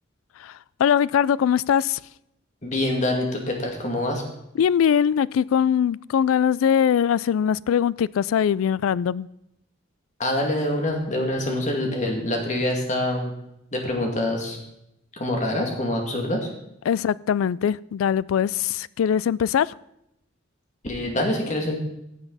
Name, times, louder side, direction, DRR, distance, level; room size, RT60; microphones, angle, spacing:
voice 1, 0.4-2.0 4.6-9.3 16.9-19.7, left 8 dB, 85° left, 21 dB, 0.3 m, -21 dB
voice 2, 2.6-4.2 10.2-13.3 13.7-14.6 15.1-16.5 20.8-21.8, left 1 dB, 35° left, 1 dB, 2.3 m, -25 dB
15.5 x 8.1 x 4.1 m, 0.82 s
head